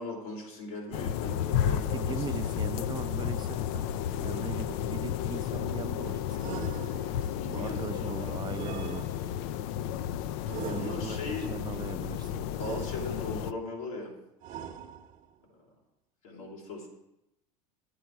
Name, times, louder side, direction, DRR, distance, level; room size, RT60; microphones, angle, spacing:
voice 1, 0.0-2.5 7.1-8.4 10.5-11.5 12.6-14.1 16.2-16.9, left 2 dB, 90° left, -1 dB, 3.6 m, -39 dB
sound 1, 0.9-13.5, left 10 dB, 65° left, 0.4 m, -32 dB
voice 2, 1.9-3.9 4.2-6.7 7.4-9.0 10.6-11.2 11.5-12.5, right 7 dB, 25° right, 11 dB, 0.5 m, -39 dB
sound 2, 6.4-7.4 8.5-9.6 10.5-11.4 12.6-13.5 14.4-15.4, right 9 dB, 45° right, 0.9 m, -42 dB
10.5 x 8.4 x 4.6 m, 0.88 s
supercardioid pair, 110°, 18 cm